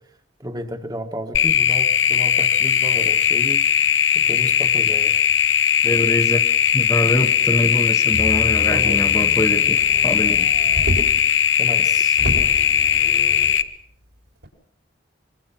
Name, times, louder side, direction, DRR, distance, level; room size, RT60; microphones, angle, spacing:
voice 1, 0.4-3.7 4.1-5.2 5.9-6.0 8.6-9.0 11.6-12.2, equal, 20° right, 6 dB, 1.8 m, -32 dB
sound 1, 1.3-13.6, left 9 dB, 80° left, 1.0 m, -18 dB
voice 2, 5.8-6.4 6.7-10.5, left 1 dB, 15° left, 5 dB, 1.0 m, -24 dB
Motor vehicle (road), 8.1-11.3 11.8-11.9 12.2-13.6 14.4-14.5, equal, 70° right, 5.0 m, -30 dB
25.0 x 22.0 x 5.9 m, 0.68 s
head